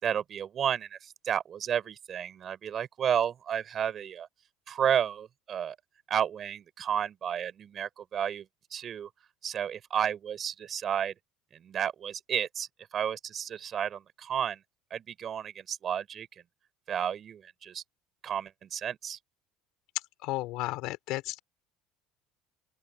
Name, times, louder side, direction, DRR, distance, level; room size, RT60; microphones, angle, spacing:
voice 1, 0.0-4.3 4.7-5.8 6.1-8.5 8.7-9.1 9.4-11.1 11.5-14.6 14.9-16.3 16.9-17.8 18.2-19.2, right 8 dB, 30° right, 6.1 m, -32 dB
voice 2, 20.2-21.4, left 19 dB, 60° left, 4.6 m, -33 dB
open air
cardioid pair, 165°, 0 cm